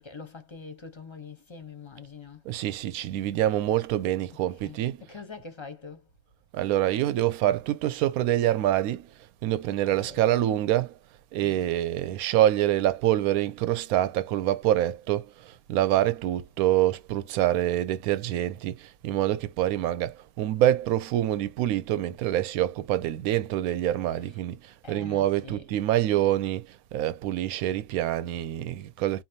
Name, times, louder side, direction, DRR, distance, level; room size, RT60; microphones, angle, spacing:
voice 1, 0.0-2.5 4.6-4.8 5.1-6.1 9.8-10.3 11.4-11.6 24.8-25.6, left 5 dB, 25° left, 0.6 m, -44 dB
voice 2, 2.4-5.0 6.5-11.0 11.3-29.2, right 13 dB, 85° right, 1.0 m, -26 dB
4.2 x 2.7 x 2.7 m
omnidirectional pair, 1.5 m